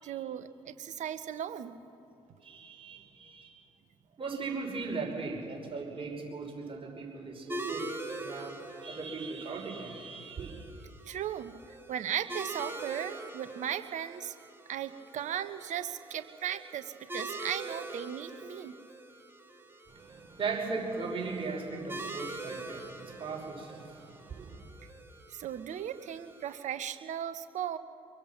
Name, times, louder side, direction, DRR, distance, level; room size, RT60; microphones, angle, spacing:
voice 1, 0.0-1.8 11.0-14.3 14.7-18.8 25.3-27.8, right 9 dB, 55° right, 11 dB, 1.2 m, -37 dB
voice 2, 2.4-3.5 4.2-7.8 8.2-8.6 8.8-10.6 19.9-24.6, right 4 dB, 40° right, 0 dB, 5.5 m, -38 dB
sound 1, 7.5-26.6, right 2 dB, 15° right, 3.3 m, -44 dB
24.5 x 23.0 x 6.0 m, 2.9 s
hypercardioid pair, 50°, 14 cm